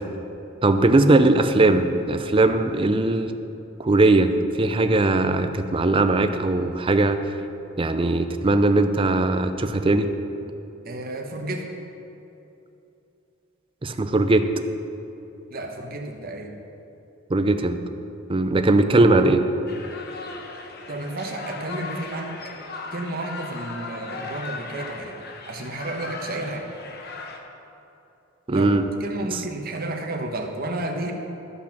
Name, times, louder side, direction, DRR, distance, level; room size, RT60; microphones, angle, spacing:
voice 1, 0.6-3.3 3.8-4.3 4.6-7.2 7.8-10.1 13.8-14.5 17.3-17.8 18.3-19.4 28.5-28.8, right 2 dB, 25° right, 8 dB, 0.5 m, -19 dB
voice 2, 10.8-11.7 15.5-16.5 20.9-22.3 22.9-25.2 25.5-26.7 28.5-28.7 29.0-31.1, right 2 dB, 50° right, 3 dB, 1.0 m, -31 dB
sound 1, 19.7-27.4, left 3 dB, 50° left, 1.0 m, -37 dB
12.5 x 5.9 x 5.9 m, 2.9 s
head